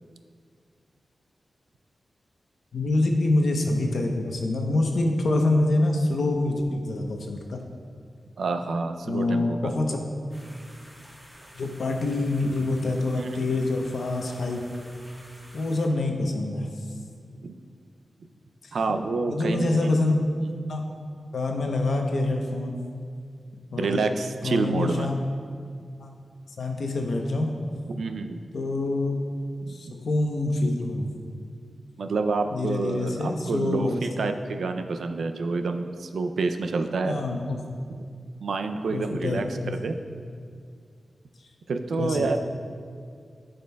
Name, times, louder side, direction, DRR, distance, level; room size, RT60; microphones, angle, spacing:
voice 1, 2.7-7.6 9.0-10.0 11.5-14.6 15.5-16.7 18.6-18.7 19.3-20.1 20.7-20.8 21.3-22.8 23.7-24.1 24.4-25.2 26.0-26.1 26.6-27.5 28.5-29.2 29.7-31.1 32.5-34.0 37.0-37.8 38.9-39.7 42.0-42.4, left 2 dB, 75° left, 2 dB, 0.8 m, -26 dB
voice 2, 8.4-9.7 13.2-13.4 17.4-17.5 18.7-20.0 20.4-20.5 23.8-25.1 27.9-28.4 29.6-30.0 32.0-37.2 37.9-38.0 38.4-40.0 41.7-42.4, right 3 dB, 90° right, 7 dB, 0.4 m, -28 dB
sound 1, 10.3-15.9, equal, 5° right, 1.3 m, -50 dB
13.0 x 5.2 x 2.3 m, 2.2 s
wide cardioid pair, 125°, 0 cm